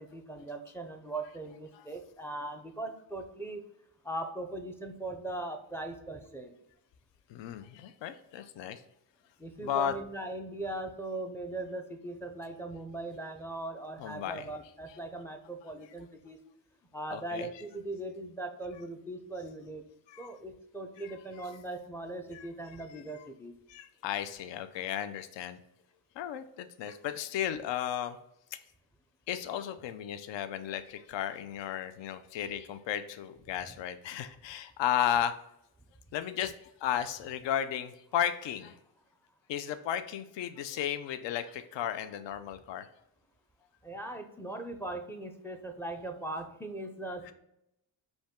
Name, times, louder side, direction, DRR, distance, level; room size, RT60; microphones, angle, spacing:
voice 1, 0.0-3.7 4.0-6.5 9.4-16.4 16.9-19.8 20.2-23.5 43.8-47.3, right 2 dB, 5° left, 5 dB, 0.5 m, -39 dB
voice 2, 7.3-8.8 9.6-9.9 14.0-14.5 17.1-17.5 20.1-20.3 21.4-21.5 22.3-22.5 23.1-23.2 23.7-25.6 26.2-28.2 28.5-28.6 29.3-35.3 36.1-36.5 36.8-38.7 39.5-42.9 47.3-47.4, left 10 dB, 65° left, 10 dB, 0.5 m, -34 dB
5.1 x 2.3 x 3.6 m, 0.82 s
cardioid pair, 80°, 49 cm